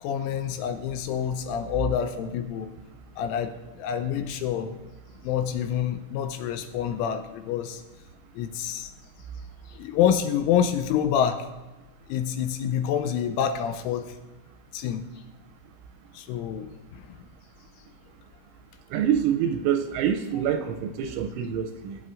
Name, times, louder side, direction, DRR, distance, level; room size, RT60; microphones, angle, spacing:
voice 1, 0.0-2.7 3.2-4.8 5.2-7.8 8.4-8.9 9.7-11.5 12.1-14.1 14.7-15.1 16.1-17.0, left 9 dB, 85° left, 8 dB, 2.9 m, -27 dB
voice 2, 18.9-22.0, right 9 dB, 85° right, 6 dB, 2.8 m, -26 dB
20.5 x 9.0 x 2.5 m, 1.1 s
omnidirectional pair, 5.9 m